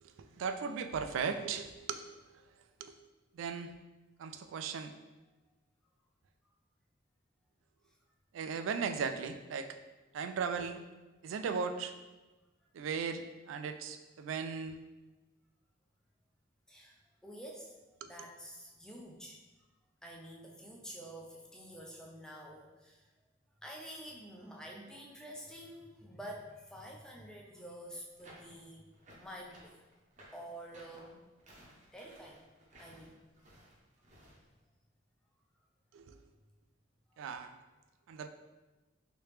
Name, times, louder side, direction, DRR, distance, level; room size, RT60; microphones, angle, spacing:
voice 1, 0.0-2.0 2.8-3.0 3.3-3.7 4.2-4.9 8.3-9.8 10.1-10.8 11.2-11.9 12.7-14.8 18.0-18.1 35.9-36.2 37.2-37.5 38.1-38.3, right 5 dB, 85° right, 8 dB, 0.3 m, -37 dB
voice 2, 16.7-19.4 20.0-23.0 23.6-28.8 29.1-29.8 30.3-31.2 31.9-32.4 32.8-33.2 37.1-37.2, equal, 5° left, -1 dB, 0.4 m, -49 dB
sound 1, 28.2-34.4, right 1 dB, 40° right, 0.7 m, -58 dB
3.2 x 2.9 x 3.2 m, 1.2 s
head